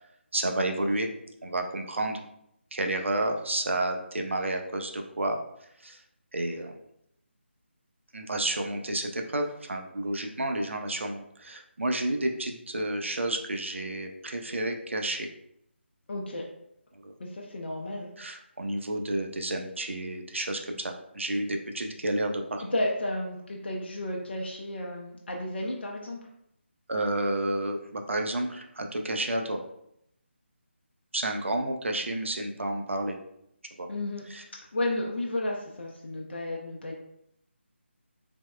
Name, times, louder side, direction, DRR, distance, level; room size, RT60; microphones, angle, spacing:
voice 1, 0.3-1.1 1.4-2.2 2.7-5.4 5.8-6.0 6.3-6.8 8.1-15.3 16.9-17.1 18.2-22.6 26.9-29.6 31.1-33.2 33.8-33.9 34.3-34.4, right 1 dB, 75° right, 4 dB, 0.4 m, -30 dB
voice 2, 16.1-16.4 17.2-18.1 22.7-26.2 33.9-34.2 34.7-37.0, left 1 dB, 60° left, -1 dB, 0.4 m, -32 dB
3.3 x 2.0 x 2.3 m, 0.76 s
figure-of-eight pair, 155°, 7 cm